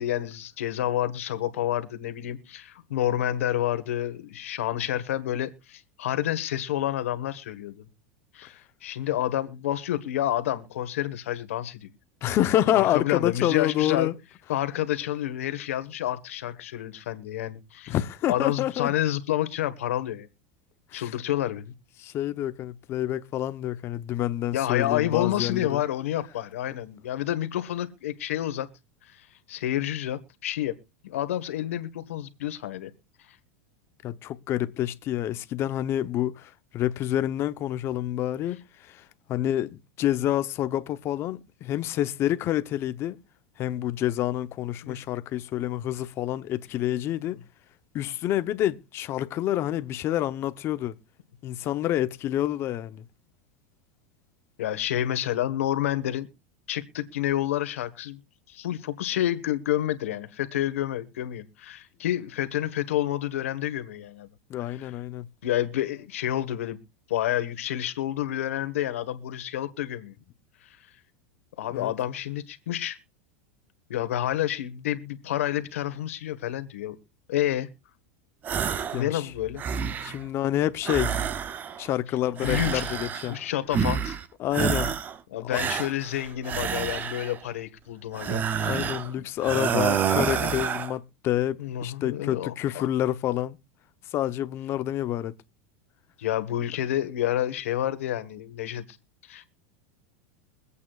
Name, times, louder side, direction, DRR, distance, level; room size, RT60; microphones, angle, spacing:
voice 1, 0.0-7.8 8.3-11.9 12.7-14.1 14.5-17.9 18.3-20.3 20.9-21.7 24.5-28.7 29.5-30.7 31.0-32.9 44.8-45.0 54.6-56.3 56.7-58.2 58.5-64.3 64.8-64.9 65.4-66.8 67.1-70.1 71.6-73.0 73.9-76.9 77.3-77.7 78.9-79.6 82.4-82.9 83.2-84.2 85.3-88.8 89.2-89.3 90.3-90.5 91.6-92.9 96.2-98.8 99.3-99.5, left 12 dB, 90° left, 1.4 m, -29 dB
voice 2, 12.2-14.1 17.9-18.9 20.9-21.0 22.0-25.8 34.0-39.0 39.3-43.2 43.6-47.4 47.9-51.0 51.4-53.0 64.5-65.3 71.7-71.9 78.9-79.3 80.0-81.1 81.8-83.4 84.4-84.9 88.6-93.6 94.1-95.3, left 12 dB, 35° left, 0.8 m, -28 dB
sound 1, 78.4-79.0 79.4-80.2 80.8-81.9 82.4-83.4 83.7-84.2 84.5-85.2 85.5-87.4 88.1-89.1 89.4-90.9, right 7 dB, 25° right, 0.6 m, -28 dB
23.5 x 8.5 x 2.4 m
supercardioid pair, 135°, 7 cm